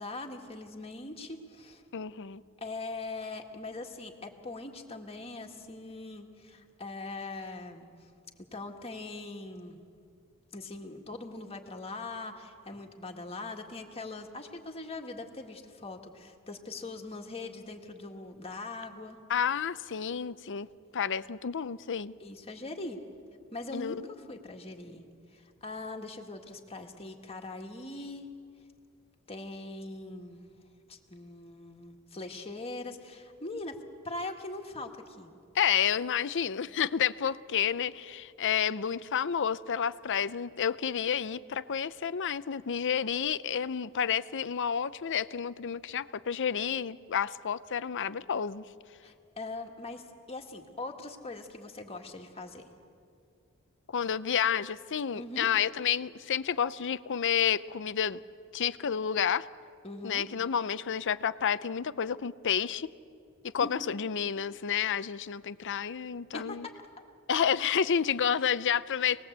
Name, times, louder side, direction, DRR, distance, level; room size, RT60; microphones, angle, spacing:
voice 1, 0.0-1.8 2.6-7.9 8.5-9.8 10.5-19.2 22.2-23.0 23.5-25.0 25.3-28.3 29.3-30.5 30.9-33.8 34.0-35.3 49.0-52.7 55.1-55.5 59.8-60.3 63.6-63.9 66.3-66.7, left 2 dB, 25° left, 3 dB, 1.9 m, -41 dB
voice 2, 1.9-2.4 19.3-20.7 20.9-22.1 23.7-24.0 35.5-48.6 53.9-58.2 58.5-59.5 60.0-62.9 63.4-66.7 67.3-69.2, left 8 dB, 55° left, 15 dB, 0.6 m, -30 dB
27.0 x 19.5 x 8.1 m, 2.4 s
head